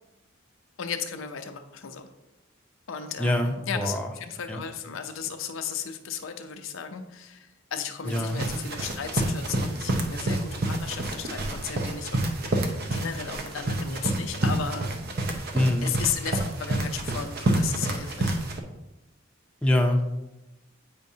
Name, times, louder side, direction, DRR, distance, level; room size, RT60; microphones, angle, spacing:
voice 1, 0.8-2.1 2.9-14.9 15.8-18.5, left 7 dB, 85° left, 6 dB, 0.6 m, -35 dB
voice 2, 3.2-4.1 4.5-4.6 8.1-8.4 15.5-15.9 19.6-20.1, left 1 dB, 5° left, 1 dB, 0.6 m, -24 dB
sound 1, 8.1-18.6, right 2 dB, 55° right, 0.7 m, -29 dB
8.2 x 5.2 x 2.7 m, 0.98 s
head